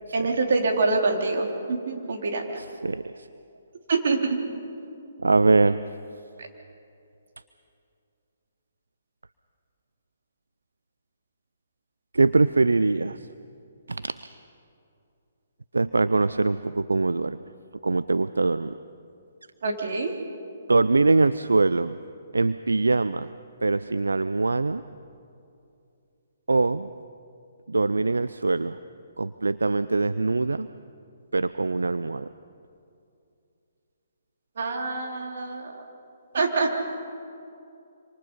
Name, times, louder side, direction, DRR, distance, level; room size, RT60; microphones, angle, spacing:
voice 1, 0.1-2.4 3.9-4.4 19.6-20.1 34.6-35.7 36.3-36.7, right 3 dB, 60° right, 2 dB, 3.5 m, -25 dB
voice 2, 5.2-5.8 12.1-13.2 13.9-14.1 15.7-17.4 17.8-18.7 20.7-22.0 22.3-23.3 23.6-24.8 26.5-26.9 27.7-28.8 29.2-30.7 31.3-32.3, right 3 dB, 85° right, 14 dB, 0.5 m, -22 dB
26.5 x 26.5 x 5.5 m, 2.5 s
figure-of-eight pair, 135°, 0 cm